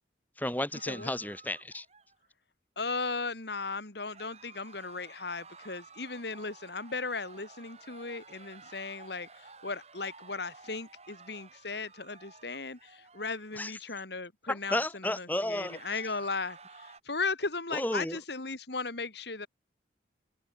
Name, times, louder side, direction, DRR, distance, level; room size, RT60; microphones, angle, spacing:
voice 1, 0.4-1.8 13.6-13.7 14.5-15.8 17.7-18.2, left 1 dB, 10° left, 3.0 m, -32 dB
sound 1, 0.7-2.3 4.0-13.6 15.3-17.0, right 4 dB, 35° right, 7.8 m, -53 dB
voice 2, 2.8-19.5, left 4 dB, 60° left, 2.2 m, -37 dB
open air
head